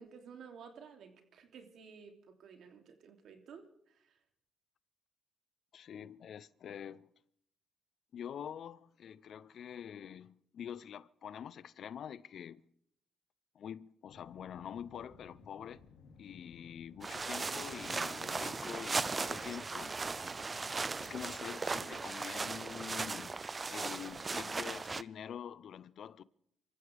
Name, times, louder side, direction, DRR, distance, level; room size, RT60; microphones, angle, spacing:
voice 1, 0.0-4.2, right 6 dB, 70° right, 3.0 m, -54 dB
voice 2, 5.7-7.1 8.1-12.6 13.5-15.8 16.2-20.0 21.0-23.3 23.7-26.2, left 9 dB, 65° left, 0.7 m, -46 dB
sound 1, 14.1-21.4, left 5 dB, 85° left, 2.6 m, -58 dB
sound 2, 17.0-25.0, right 4 dB, 30° right, 0.5 m, -38 dB
27.0 x 15.0 x 3.5 m
cardioid pair, 90°, 0 cm